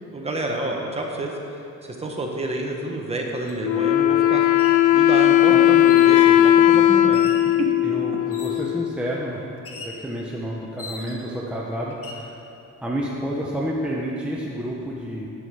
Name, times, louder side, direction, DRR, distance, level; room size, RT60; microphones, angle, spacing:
voice 1, 0.1-1.3 1.8-7.2 7.6-7.7, right 2 dB, 20° right, 0 dB, 1.1 m, -29 dB
sound 1, 3.5-3.6 4.4-4.8 5.8-6.4 7.1-7.5 8.3-8.7 9.7-10.0 10.8-11.4 11.9-12.3, left 3 dB, 50° left, 1.2 m, -39 dB
Wind instrument woodwind instrument, 3.6-9.1, left 12 dB, 75° left, 0.5 m, -17 dB
voice 2, 7.8-9.4 9.8-12.4 12.8-15.3, equal, 5° right, -4 dB, 0.8 m, -29 dB
9.7 x 8.5 x 4.8 m, 2.8 s
cardioid pair, 145°, 30 cm